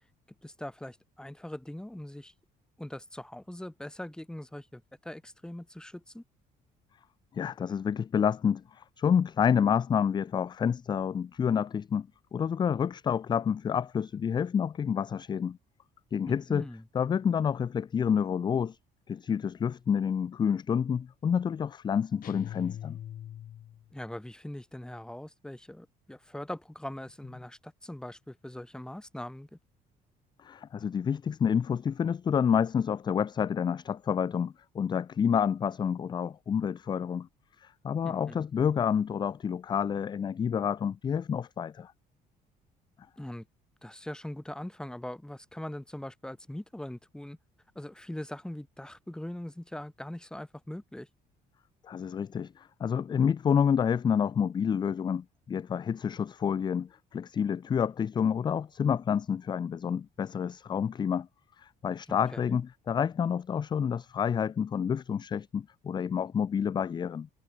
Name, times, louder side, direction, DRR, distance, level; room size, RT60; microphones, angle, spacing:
voice 1, 0.4-2.3 2.8-6.2 16.2-16.8 23.9-29.6 38.0-38.5 43.2-43.4 43.8-47.4 47.7-51.1 62.1-62.6, left 1 dB, 5° left, 1.7 m, -41 dB
voice 2, 7.3-15.6 16.1-16.7 16.9-18.8 19.1-23.0 30.4-37.3 37.6-41.9 51.8-61.3 61.6-67.3, left 7 dB, 25° left, 0.4 m, -29 dB
sound 1, 22.2-23.9, left 11 dB, 60° left, 2.8 m, -41 dB
cardioid pair, 110°, 17 cm